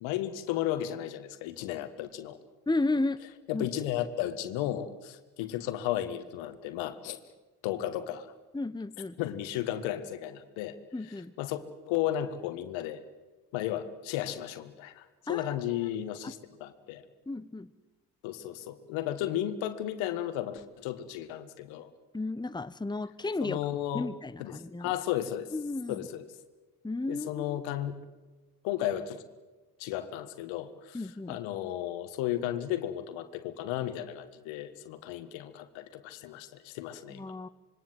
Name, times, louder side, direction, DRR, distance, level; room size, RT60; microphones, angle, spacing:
voice 1, 0.0-2.4 3.5-7.2 7.6-8.3 9.2-10.8 11.1-13.0 13.5-17.0 18.2-21.9 23.4-24.1 24.4-25.5 25.9-26.3 27.1-28.0 28.6-29.2 29.8-37.3, left 12 dB, 75° left, 11 dB, 1.7 m, -34 dB
voice 2, 2.7-3.2 3.5-3.7 8.5-9.2 10.9-11.3 15.3-15.6 16.2-16.3 17.3-17.7 22.1-23.6 23.9-24.9 25.5-26.1 26.8-27.6 30.9-31.4 37.1-37.5, left 2 dB, 10° left, 14 dB, 1.1 m, -33 dB
26.0 x 23.0 x 7.8 m, 1.2 s
hypercardioid pair, 45°, 46 cm